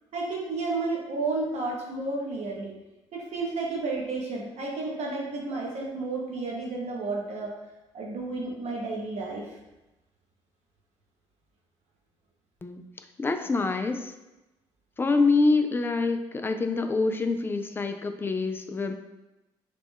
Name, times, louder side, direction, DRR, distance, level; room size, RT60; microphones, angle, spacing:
voice 1, 0.1-2.7 3.1-7.5 7.9-9.5, right 3 dB, 50° right, -2 dB, 1.0 m, -31 dB
voice 2, 13.2-14.1 15.0-18.9, left 3 dB, 15° left, 7 dB, 0.4 m, -26 dB
3.3 x 3.0 x 3.5 m, 0.99 s
figure-of-eight pair, 45°, 15 cm